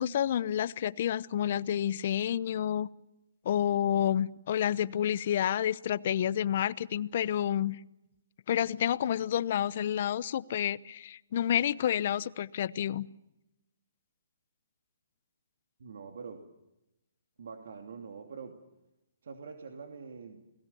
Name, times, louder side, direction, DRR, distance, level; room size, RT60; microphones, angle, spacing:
voice 1, 0.0-2.9 3.4-7.8 8.5-13.1, left 10 dB, 50° left, 0.8 m, -29 dB
voice 2, 15.8-16.4 17.4-18.6 19.2-20.4, right 5 dB, 65° right, 2.8 m, -44 dB
30.0 x 20.0 x 7.1 m
hypercardioid pair, 145°, 0 cm